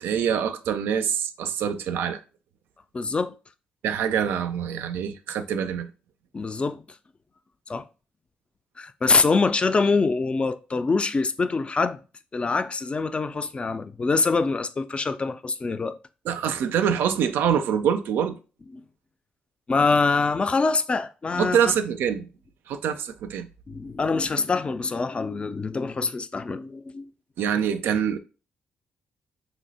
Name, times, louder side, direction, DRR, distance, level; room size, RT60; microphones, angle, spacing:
voice 1, 0.0-2.2 3.8-5.9 16.3-18.4 21.4-22.3 22.7-23.5 27.4-28.2, right 8 dB, 80° right, 0.3 m, -25 dB
voice 2, 2.9-3.3 6.3-6.8 7.7-7.8 8.8-12.0 12.3-16.0 18.7-18.8 19.7-21.7 23.7-27.0, left 4 dB, 30° left, 0.3 m, -24 dB
2.7 x 2.0 x 4.0 m
supercardioid pair, 65°, 4 cm